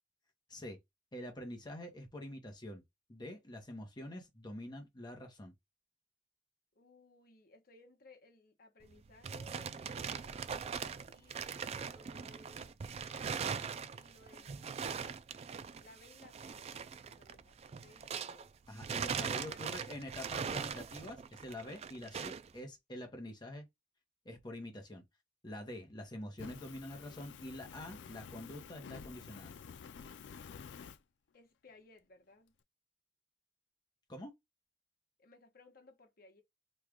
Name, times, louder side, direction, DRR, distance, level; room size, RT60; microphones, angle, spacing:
voice 1, 1.1-2.8 3.1-5.5 18.7-23.7 24.2-25.0 25.4-29.6 34.1-34.3, left 1 dB, 25° left, 0.8 m, -46 dB
voice 2, 6.7-12.8 13.0-14.9 15.8-18.5 19.4-19.8 21.8-22.1 31.3-32.5 35.2-36.4, left 2 dB, 55° left, 1.0 m, -62 dB
sound 1, 8.8-18.5 18.8-22.5, right 6 dB, 35° right, 0.3 m, -41 dB
Fire, 26.4-31.0, left 6 dB, 85° left, 0.4 m, -50 dB
3.1 x 2.4 x 3.5 m
head